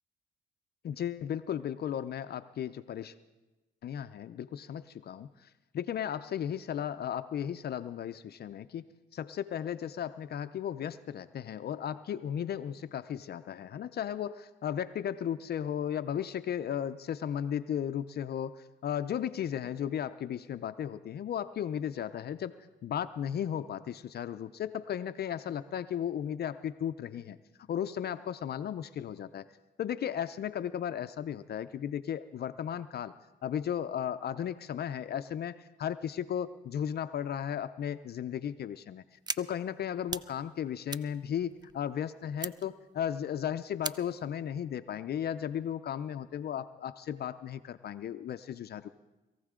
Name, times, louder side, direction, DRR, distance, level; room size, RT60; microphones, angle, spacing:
voice 1, 0.8-3.1 3.8-8.9 9.1-27.4 27.7-29.5 29.8-33.1 33.4-48.9, left 9 dB, 55° left, 11 dB, 0.5 m, -35 dB
sound 1, 39.3-39.4 39.8-40.3 40.6-41.9 42.4-42.7 43.1-43.2 43.8-44.2, right 4 dB, 20° right, 0.4 m, -37 dB
22.0 x 15.0 x 3.7 m, 1.1 s
cardioid pair, 90°, 20 cm